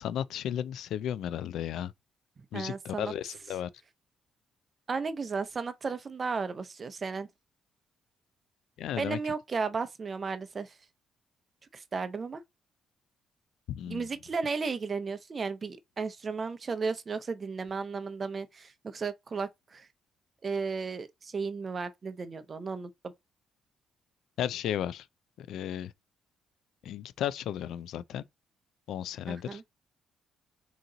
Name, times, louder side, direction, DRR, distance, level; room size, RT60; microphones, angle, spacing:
voice 1, 0.0-1.9 2.5-3.7 8.8-9.2 13.7-14.1 24.4-25.1 25.4-25.9 26.8-28.3 28.9-29.6, left 10 dB, 80° left, 0.3 m, -34 dB
voice 2, 2.5-3.1 4.9-7.3 9.0-10.7 11.7-12.4 13.9-19.9 20.4-22.9 29.3-29.6, right 4 dB, 40° right, 0.6 m, -34 dB
3.8 x 2.9 x 3.8 m
cardioid pair, 90°, 0 cm